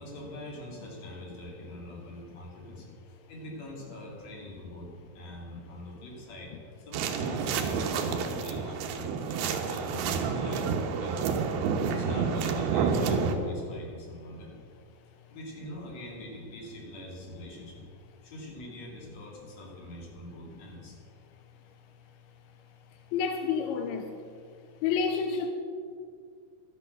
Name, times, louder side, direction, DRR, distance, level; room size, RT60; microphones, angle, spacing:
voice 1, 0.0-4.9 5.1-6.5 6.9-11.3 11.9-14.5 15.3-17.8 18.2-21.0, equal, 45° left, -2 dB, 3.7 m, -44 dB
sound 1, 6.9-13.4, right 5 dB, 80° right, 2.9 m, -29 dB
voice 2, 23.1-24.1 24.8-25.5, left 6 dB, 85° left, 6 dB, 2.6 m, -29 dB
12.0 x 11.0 x 6.7 m, 2.3 s
omnidirectional pair, 4.5 m